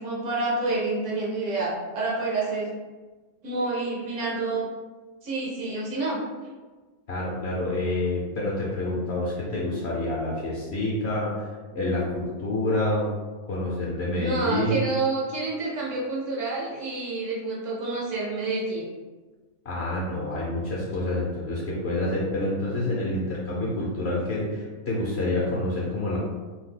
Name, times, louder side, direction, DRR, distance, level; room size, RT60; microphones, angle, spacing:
voice 1, 0.0-2.7 3.4-4.7 5.2-6.2 14.1-18.9, right 3 dB, 65° right, -4 dB, 0.9 m, -28 dB
voice 2, 7.1-13.1 13.5-14.9 19.6-26.2, left 1 dB, 60° left, -5 dB, 0.7 m, -28 dB
2.7 x 2.3 x 3.5 m, 1.3 s
omnidirectional pair, 1.6 m